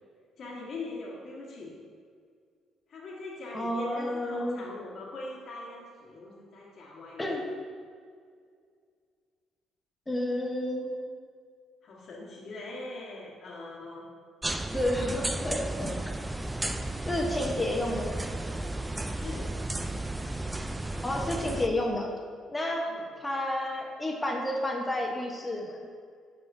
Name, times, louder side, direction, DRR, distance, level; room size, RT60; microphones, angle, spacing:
voice 1, 0.4-1.7 2.9-7.4 11.8-14.1 19.1-19.6 22.8-23.0, left 2 dB, 55° left, -5 dB, 1.3 m, -42 dB
voice 2, 3.5-4.6 7.2-7.4 10.1-10.9 14.7-15.9 17.0-18.2 21.0-22.1 22.5-22.9 23.2-25.8, left 1 dB, 20° left, 0 dB, 1.0 m, -30 dB
sound 1, 14.4-21.7, right 2 dB, 15° right, 0.3 m, -33 dB
10.0 x 3.7 x 2.6 m, 2.1 s
supercardioid pair, 75°, 0 cm